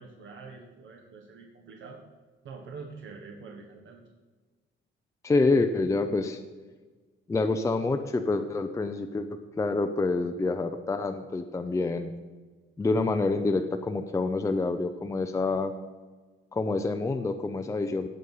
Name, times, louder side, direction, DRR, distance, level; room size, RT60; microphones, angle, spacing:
voice 1, 0.0-2.0 2.4-4.0, right 4 dB, 65° right, 1 dB, 1.5 m, -45 dB
voice 2, 5.2-6.4 7.3-12.1 12.8-15.7 16.5-18.1, left 3 dB, 15° left, 7 dB, 0.5 m, -27 dB
16.5 x 6.4 x 5.5 m, 1.3 s
wide cardioid pair, 175°, 21 cm